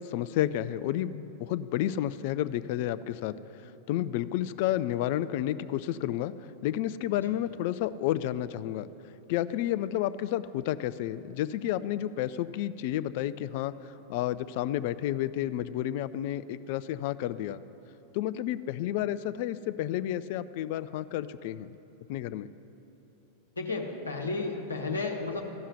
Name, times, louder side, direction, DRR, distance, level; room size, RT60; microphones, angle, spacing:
voice 1, 0.0-3.3 3.6-6.3 6.6-8.9 9.3-17.6 18.1-21.8 22.1-22.5, left 12 dB, 50° left, 14 dB, 0.3 m, -31 dB
voice 2, 23.5-25.4, left 3 dB, 75° left, 2 dB, 1.2 m, -33 dB
14.5 x 5.6 x 9.7 m, 3.0 s
figure-of-eight pair, 90°, 0 cm